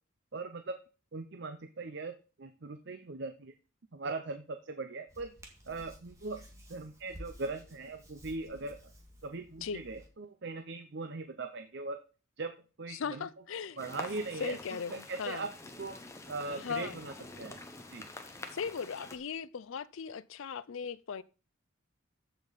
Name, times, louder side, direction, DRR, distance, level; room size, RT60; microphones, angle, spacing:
voice 1, 0.3-0.8 1.1-3.5 3.9-5.3 5.7-8.8 9.2-12.0 12.4-13.3 13.8-15.5 15.8-16.0 16.3-17.6 17.9-18.1, right 3 dB, 55° right, 0.7 m, -40 dB
Hands, 5.1-10.1, equal, 15° right, 1.7 m, -53 dB
voice 2, 12.9-13.8 14.4-15.5 16.5-17.0 18.5-21.2, left 6 dB, 75° left, 0.5 m, -38 dB
sound 1, 13.8-19.2, left 2 dB, 15° left, 1.0 m, -47 dB
14.0 x 5.2 x 4.1 m
head